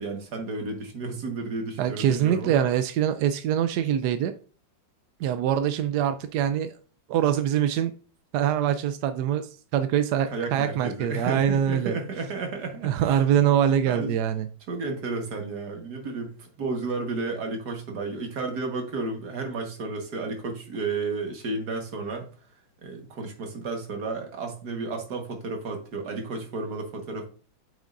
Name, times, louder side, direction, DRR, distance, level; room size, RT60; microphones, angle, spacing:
voice 1, 0.0-2.7 10.3-13.2 13.8-14.1 14.7-22.3 22.8-27.3, right 3 dB, 55° right, 1.9 m, -32 dB
voice 2, 1.8-4.3 5.2-6.7 7.1-7.9 8.3-12.0 12.8-14.5, right 9 dB, 75° right, 1.0 m, -24 dB
8.4 x 6.4 x 2.5 m
omnidirectional pair, 2.1 m